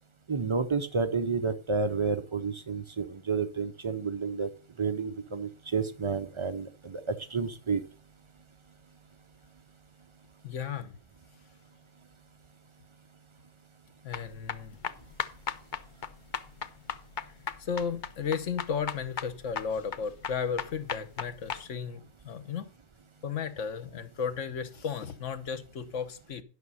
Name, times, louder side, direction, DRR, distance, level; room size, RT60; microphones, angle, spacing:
voice 1, 0.3-4.5 4.8-7.8, right 5 dB, 50° right, 0.3 m, -30 dB
voice 2, 10.4-10.9 14.0-14.8 17.6-22.6 23.2-26.4, left 6 dB, 65° left, 1.3 m, -34 dB
sound 1, 14.1-21.6, left 7 dB, 50° left, 0.6 m, -37 dB
11.5 x 6.0 x 5.5 m
omnidirectional pair, 1.4 m